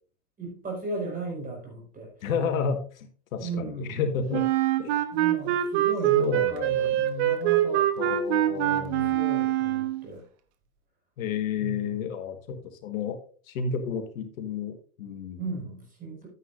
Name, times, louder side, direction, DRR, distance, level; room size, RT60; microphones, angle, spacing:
voice 1, 0.4-2.1 3.4-4.0 5.1-7.9 8.5-10.2 11.6-12.1 15.4-16.3, right 3 dB, 20° right, 0 dB, 5.3 m, -36 dB
voice 2, 2.2-4.4 4.8-5.0 6.2-6.9 8.0-9.1 11.2-13.2 13.5-15.4, left 6 dB, 65° left, 7 dB, 1.6 m, -31 dB
Wind instrument woodwind instrument, 4.3-10.0, right 12 dB, 45° right, 1.3 m, -24 dB
11.5 x 9.8 x 2.6 m, 0.40 s
hypercardioid pair, 135°, 45 cm